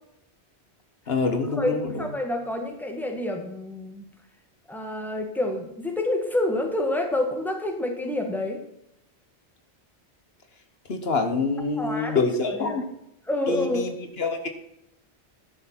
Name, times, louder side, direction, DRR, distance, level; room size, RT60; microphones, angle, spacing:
voice 1, 1.1-2.1 10.9-12.8 13.5-13.9 14.2-14.5, left 3 dB, 65° left, 6 dB, 1.4 m, -26 dB
voice 2, 1.6-4.0 4.7-8.6 11.8-12.8 13.3-13.8, left 1 dB, ahead, 3 dB, 1.6 m, -28 dB
11.5 x 6.5 x 5.9 m, 0.80 s
omnidirectional pair, 1.1 m